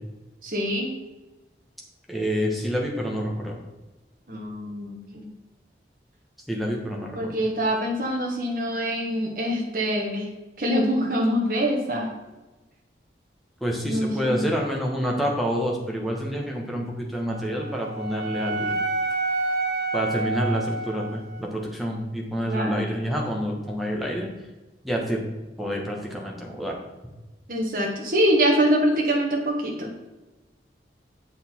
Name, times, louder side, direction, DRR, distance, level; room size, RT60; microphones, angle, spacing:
voice 1, 0.4-0.9 4.3-5.3 7.1-10.3 10.6-12.1 13.9-14.4 22.5-22.9 27.5-29.9, equal, 50° right, -1 dB, 1.4 m, -24 dB
voice 2, 2.1-3.6 6.5-7.3 13.6-18.7 19.9-24.3 24.8-25.2 25.6-26.8, equal, ahead, -2 dB, 1.3 m, -28 dB
Wind instrument woodwind instrument, 17.3-21.5, right 2 dB, 75° right, 0.9 m, -29 dB
7.9 x 6.5 x 4.5 m, 1.1 s
head